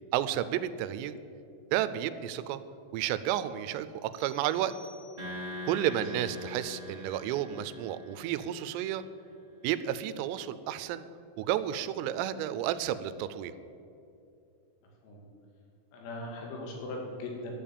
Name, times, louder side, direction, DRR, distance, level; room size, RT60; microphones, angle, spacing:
voice 1, 0.1-1.2 1.7-2.6 2.9-4.7 5.6-9.0 9.6-11.0 11.4-13.5, right 11 dB, 85° right, 14 dB, 3.2 m, -31 dB
sound 1, 4.1-5.7, equal, 70° right, 2.7 m, -56 dB
sound 2, 5.2-8.6, left 1 dB, 15° right, 1.2 m, -42 dB
voice 2, 5.8-6.1 15.0-15.2 15.9-17.5, left 2 dB, 90° left, -1 dB, 5.0 m, -40 dB
12.0 x 7.4 x 8.6 m, 2.6 s
omnidirectional pair, 5.8 m